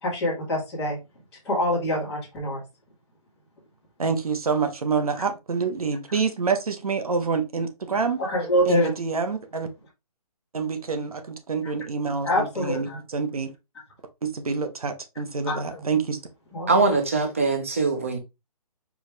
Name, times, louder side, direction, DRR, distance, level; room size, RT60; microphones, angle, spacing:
voice 1, 0.0-1.0 1.4-2.6 8.2-8.9 12.2-13.0 15.5-15.8 16.5-16.7, left 1 dB, 5° left, 1.2 m, -25 dB
voice 2, 4.0-8.2 8.7-9.7 10.5-13.5 14.2-16.2, right 5 dB, 65° right, 1.0 m, -27 dB
voice 3, 16.7-18.2, right 3 dB, 20° right, 0.6 m, -22 dB
4.8 x 3.0 x 3.3 m
hypercardioid pair, 180°, 20 cm